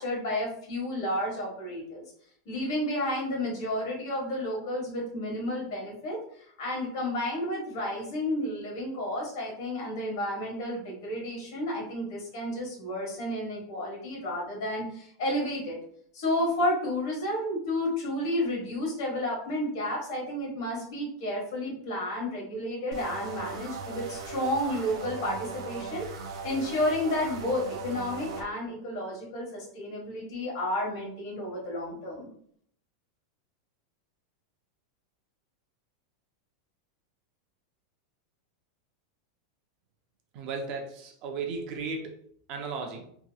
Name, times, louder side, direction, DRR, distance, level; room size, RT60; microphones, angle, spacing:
voice 1, 0.0-2.0 2.4-6.2 6.6-15.8 16.1-32.3, left 1 dB, 55° left, -2 dB, 1.3 m, -31 dB
sound 1, 22.9-28.4, right 4 dB, 80° right, 0.6 m, -38 dB
voice 2, 40.3-42.1 42.5-43.0, right 4 dB, 30° right, 3 dB, 0.4 m, -35 dB
2.8 x 2.7 x 2.3 m, 0.63 s
supercardioid pair, 175°, 2 cm